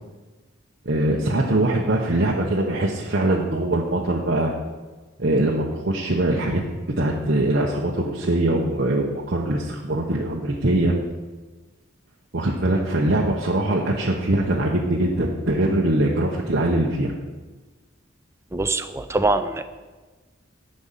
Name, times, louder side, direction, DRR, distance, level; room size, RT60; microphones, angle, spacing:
voice 1, 0.8-4.5 5.2-11.0 12.3-17.1, right 1 dB, 55° right, -2 dB, 1.0 m, -22 dB
voice 2, 18.5-19.6, right 2 dB, 15° right, 9 dB, 0.5 m, -23 dB
10.5 x 5.4 x 7.4 m, 1.3 s
head